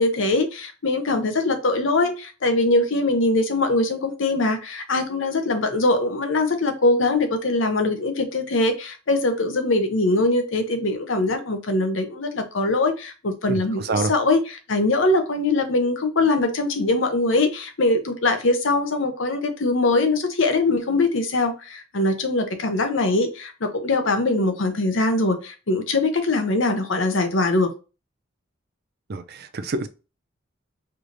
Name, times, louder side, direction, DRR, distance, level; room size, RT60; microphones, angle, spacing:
voice 1, 0.0-27.7, left 2 dB, 70° left, 0.8 m, -22 dB
voice 2, 13.5-14.1 29.1-29.9, right 3 dB, 50° right, 0.5 m, -27 dB
4.6 x 3.2 x 2.6 m
head